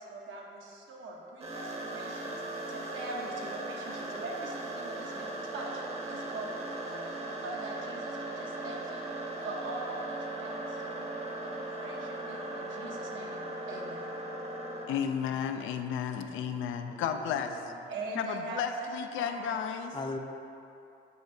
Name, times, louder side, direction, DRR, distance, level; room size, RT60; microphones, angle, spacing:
voice 1, 0.0-9.1 9.4-11.2 11.4-14.1 17.9-18.9 19.1-19.6, right 2 dB, 75° right, -1 dB, 1.0 m, -43 dB
sound 1, 1.4-14.9, right 2 dB, 30° right, 0.9 m, -38 dB
voice 2, 14.9-17.7 18.1-20.0, left 7 dB, 80° left, 7 dB, 0.4 m, -33 dB
voice 3, 16.9-17.8 19.9-20.2, left 3 dB, 25° left, 3 dB, 0.6 m, -40 dB
8.2 x 4.8 x 2.7 m, 2.7 s
cardioid pair, 90°, 20 cm